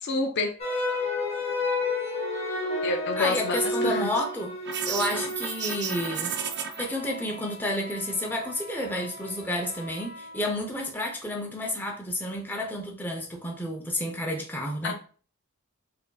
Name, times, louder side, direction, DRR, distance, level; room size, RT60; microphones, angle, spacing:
voice 1, 0.0-0.5 2.8-4.1 14.8-14.9, left 3 dB, 50° left, 0.4 m, -28 dB
sound 1, 0.6-11.0, left 2 dB, 30° left, 1.0 m, -33 dB
voice 2, 3.2-4.5 4.9-6.4 6.8-14.9, left 1 dB, 10° left, 0.6 m, -30 dB
sound 2, 4.6-6.8, right 8 dB, 50° right, 0.4 m, -32 dB
4.6 x 2.6 x 2.3 m
head